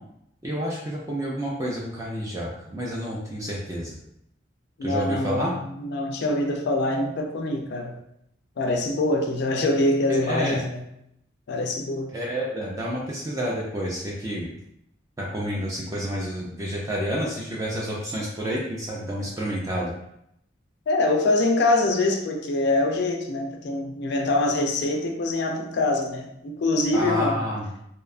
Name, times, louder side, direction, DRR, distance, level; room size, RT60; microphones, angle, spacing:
voice 1, 0.4-4.0 4.8-5.5 10.1-10.6 12.1-14.5 15.2-19.9 26.9-27.7, equal, 20° right, -4 dB, 0.3 m, -29 dB
voice 2, 4.8-7.9 8.6-10.8 11.5-12.1 20.9-27.4, left 2 dB, 60° left, 3 dB, 0.4 m, -24 dB
2.7 x 2.2 x 2.4 m, 0.77 s
head